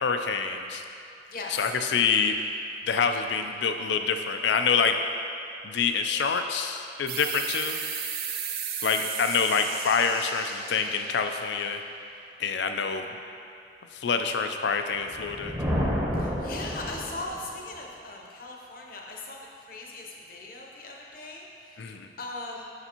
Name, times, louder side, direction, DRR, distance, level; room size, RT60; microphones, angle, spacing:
voice 1, 0.0-0.8 1.5-2.3 2.9-5.0 5.6-7.8 8.8-11.8 12.4-13.0 13.9-15.5 21.8-22.1, left 5 dB, 70° left, 6 dB, 0.4 m, -26 dB
sound 1, 7.1-12.3, right 7 dB, 55° right, 0.5 m, -35 dB
Thunder, 15.1-17.5, equal, 10° right, 0.8 m, -30 dB
voice 2, 16.1-22.7, left 2 dB, 50° left, -1 dB, 0.8 m, -39 dB
6.8 x 6.8 x 2.9 m, 2.5 s
head